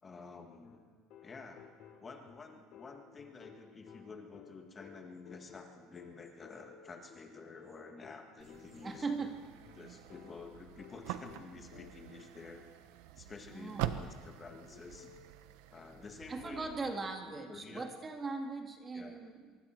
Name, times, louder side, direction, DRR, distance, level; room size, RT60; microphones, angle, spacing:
voice 1, 0.0-0.9 1.2-1.7 2.0-9.1 9.8-12.6 13.2-15.1 15.7-16.7 17.0-17.9 18.9-19.3, left 4 dB, 20° left, 4 dB, 1.9 m, -50 dB
sound 1, 0.6-12.3 14.5-15.3, left 7 dB, 60° left, 3.2 m, -57 dB
sound 2, 8.4-16.9, right 12 dB, 85° right, 1.1 m, -45 dB
voice 2, 8.8-9.4 13.5-13.9 16.3-19.6, right 3 dB, 20° right, 4 dB, 2.0 m, -40 dB
24.5 x 23.5 x 4.6 m, 1.5 s
cardioid pair, 145°, 0 cm